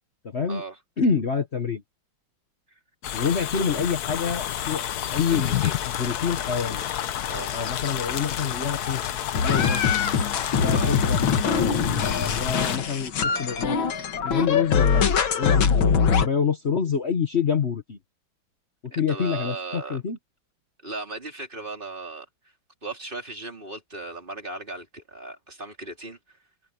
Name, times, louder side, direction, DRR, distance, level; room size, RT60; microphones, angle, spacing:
voice 1, 0.2-0.6 1.0-1.8 3.1-5.6 6.0-6.8 7.5-9.0 9.4-9.8 10.5-11.2 12.3-13.8 14.2-18.0 18.8-20.2, left 6 dB, 40° left, 1.2 m, -27 dB
sound 1, 3.0-12.8, left 11 dB, 60° left, 1.2 m, -30 dB
voice 2, 5.3-5.8 7.3-7.5 10.7-11.0 12.6-12.7 18.9-20.0 20.8-22.3 22.8-26.2, right 3 dB, 25° right, 4.1 m, -36 dB
sound 2, 9.3-16.3, left 6 dB, 85° left, 2.3 m, -23 dB
omnidirectional pair, 2.1 m